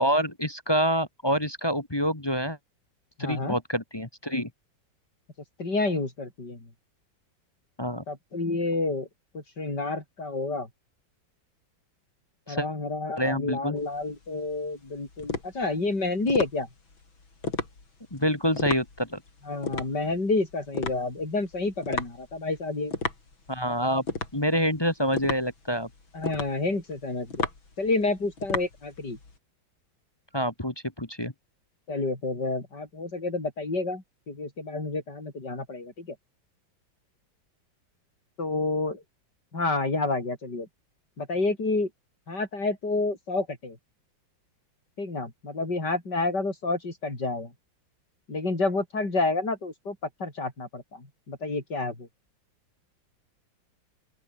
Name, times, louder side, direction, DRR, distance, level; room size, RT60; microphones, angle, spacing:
voice 1, 0.0-2.6 3.2-4.5 7.8-8.0 12.5-12.6 13.2-13.8 18.1-19.2 23.5-24.0 24.3-25.9 30.3-31.3, equal, 15° left, 1.5 m, -27 dB
voice 2, 3.2-3.6 5.6-6.7 8.1-9.1 9.3-10.7 12.5-16.7 19.4-22.9 26.1-27.5 27.8-29.2 31.9-36.2 38.4-39.0 39.5-40.7 41.2-41.9 42.3-43.8 45.0-47.5 48.3-52.1, left 3 dB, 60° left, 6.5 m, -29 dB
sound 1, 13.8-29.4, left 3 dB, 90° left, 5.5 m, -35 dB
open air
omnidirectional pair, 2.1 m